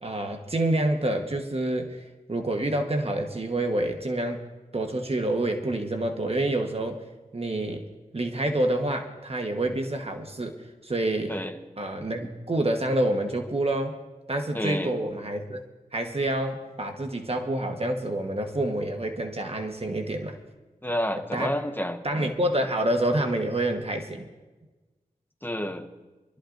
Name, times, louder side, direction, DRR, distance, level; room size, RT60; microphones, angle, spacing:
voice 1, 0.0-4.4 4.7-7.0 7.3-7.8 8.1-10.5 10.8-11.4 11.8-14.0 14.3-15.6 15.9-20.4 21.3-21.5 22.0-24.3, right 1 dB, 40° right, 3 dB, 1.2 m, -27 dB
voice 2, 14.5-14.9 20.8-22.0 25.4-25.9, equal, 15° left, 6 dB, 1.1 m, -29 dB
25.0 x 13.0 x 2.6 m, 1.2 s
wide cardioid pair, 50°, 15 cm